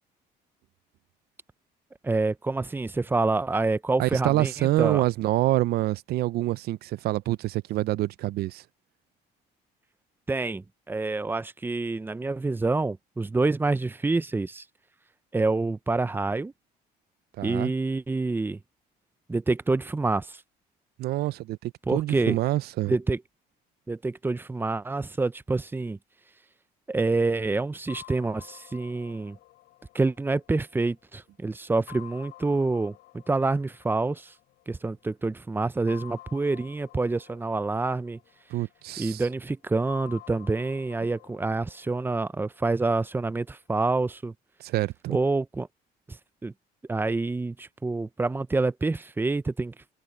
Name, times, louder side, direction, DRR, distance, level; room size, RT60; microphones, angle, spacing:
voice 1, 2.0-5.0 10.3-14.6 15.3-16.5 17.4-18.6 19.3-20.4 21.9-22.4 22.9-23.2 23.9-26.0 26.9-29.4 29.9-34.3 34.7-38.2 39.0-44.3 45.1-45.7 46.1-46.5 46.9-49.7, right 3 dB, 10° right, 0.6 m, -27 dB
voice 2, 4.0-8.6 17.4-17.7 21.0-22.9 38.5-39.2 44.6-45.2, right 16 dB, 70° right, 0.5 m, -26 dB
sound 1, 27.9-31.2 31.9-34.8 35.9-39.0 39.9-43.0, left 17 dB, 80° left, 5.7 m, -50 dB
cardioid pair, 110°, 17 cm